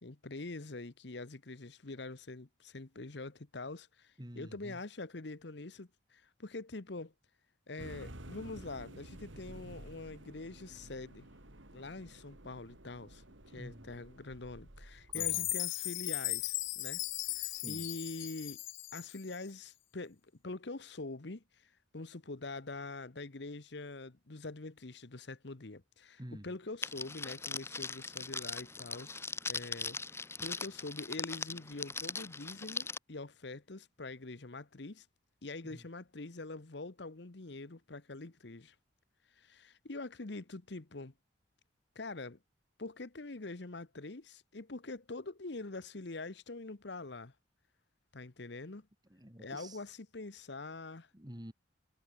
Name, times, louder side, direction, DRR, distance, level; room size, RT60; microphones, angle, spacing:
voice 1, 0.0-7.1 7.7-11.3 11.7-17.0 17.3-18.6 18.9-29.2 29.5-35.1 35.4-38.7 39.4-41.1 41.9-42.4 42.8-47.3 48.1-48.9 49.4-51.1, left 2 dB, 60° left, 1.1 m, -45 dB
voice 2, 4.2-4.8 13.6-13.9 15.1-15.5 17.5-17.9 26.2-26.5 35.7-35.8 49.1-49.8 51.1-51.5, equal, 20° right, 2.4 m, -48 dB
sound 1, 7.8-17.8, right 1 dB, 75° right, 4.0 m, -53 dB
Chime, 15.1-19.4, left 19 dB, 75° left, 0.5 m, -37 dB
Crackle, 26.8-33.0, left 4 dB, 15° left, 1.5 m, -40 dB
head